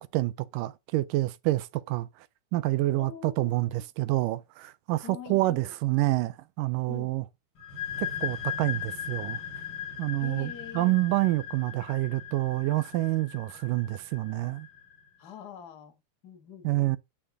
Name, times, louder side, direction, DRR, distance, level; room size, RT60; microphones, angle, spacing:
voice 1, 0.1-2.3 2.5-7.2 8.0-9.4 10.0-14.7 16.6-17.0, right 18 dB, 80° right, 2.1 m, -28 dB
voice 2, 2.9-3.7 5.0-5.7 6.9-7.1 10.2-11.0 15.2-17.0, left 9 dB, 55° left, 1.1 m, -45 dB
sound 1, 7.6-15.0, left 9 dB, 70° left, 3.9 m, -38 dB
10.0 x 4.1 x 3.5 m
omnidirectional pair, 4.2 m